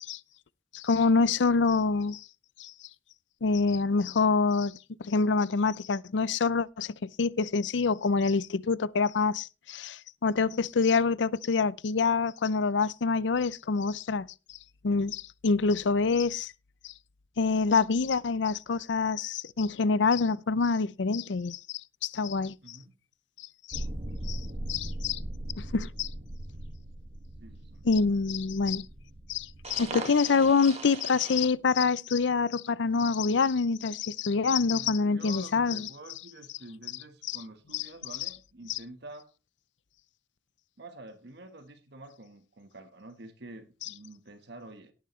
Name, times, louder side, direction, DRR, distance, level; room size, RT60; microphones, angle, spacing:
voice 1, 0.7-2.2 2.6-2.7 3.4-14.3 14.8-16.5 16.8-16.9 17.4-22.8 23.7-23.8 24.3-24.4 24.7-25.2 25.6-26.1 27.8-28.9 29.3-35.9 37.3-37.4 37.7-37.8 38.7-38.8, left 4 dB, 75° left, 0.5 m, -26 dB
voice 2, 22.6-23.0 25.7-25.9 27.4-27.9 34.6-39.3 40.8-44.9, right 2 dB, 65° right, 1.4 m, -48 dB
sound 1, 23.7-31.5, right 1 dB, 35° right, 1.8 m, -39 dB
17.5 x 8.8 x 3.2 m
head